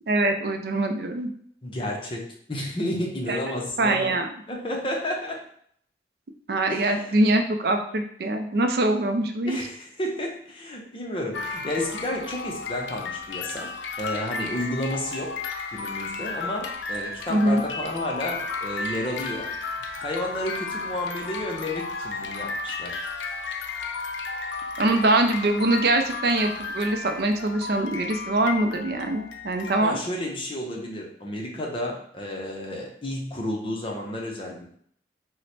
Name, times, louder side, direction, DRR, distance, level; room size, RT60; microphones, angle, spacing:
voice 1, 0.1-1.3 3.3-3.4 3.8-4.3 6.5-9.6 17.3-17.6 24.8-30.0, right 2 dB, 55° right, 5 dB, 0.4 m, -23 dB
voice 2, 1.6-2.2 2.5-4.2 4.5-5.5 6.7-7.2 9.4-13.7 14.0-15.3 15.7-19.5 20.0-23.0 29.8-34.8, left 1 dB, 30° left, 0 dB, 0.6 m, -31 dB
sound 1, 11.3-29.8, left 4 dB, 90° left, 0.4 m, -34 dB
3.1 x 2.1 x 4.1 m, 0.64 s
head